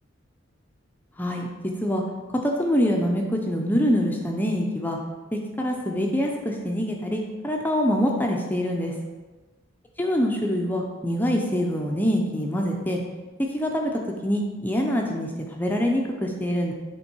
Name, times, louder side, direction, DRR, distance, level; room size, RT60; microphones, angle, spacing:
voice 1, 2.4-5.0 5.6-8.9 10.0-13.0 13.5-16.7, equal, 10° left, 0 dB, 0.6 m, -25 dB
8.2 x 3.7 x 4.5 m, 1.2 s
head